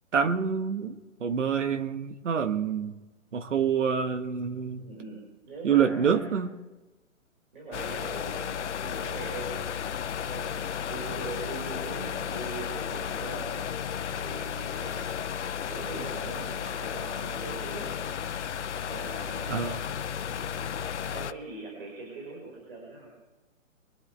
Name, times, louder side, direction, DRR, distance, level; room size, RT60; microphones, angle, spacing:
voice 1, 0.1-3.0 3.3-4.8 5.6-6.5 19.5-19.8, right 7 dB, 65° right, 1.7 m, -27 dB
voice 2, 4.8-6.3 7.5-9.9 10.3-10.6 10.9-13.6 14.1-15.1 15.7-18.1 18.8-19.8 21.1-23.1, right 3 dB, 45° right, 5.4 m, -41 dB
sound 1, 7.7-21.3, left 8 dB, 60° left, 0.8 m, -34 dB
24.0 x 11.5 x 3.4 m
hypercardioid pair, 160°, 40 cm